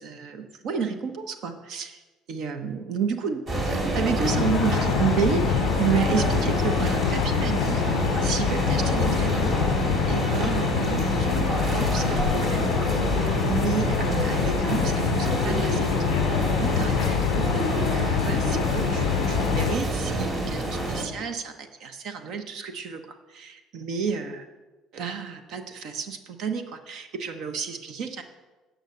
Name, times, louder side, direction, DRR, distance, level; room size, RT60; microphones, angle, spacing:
voice 1, 0.0-2.0 2.3-7.8 8.2-15.9 16.3-17.5 17.9-24.5 24.9-28.2, right 6 dB, 65° right, 7 dB, 0.9 m, -31 dB
sound 1, 3.5-21.0, right 1 dB, 45° right, 3.0 m, -27 dB
sound 2, 4.2-19.8, left 13 dB, 85° left, 0.3 m, -26 dB
9.0 x 6.1 x 6.5 m, 1.2 s
supercardioid pair, 70°, 0 cm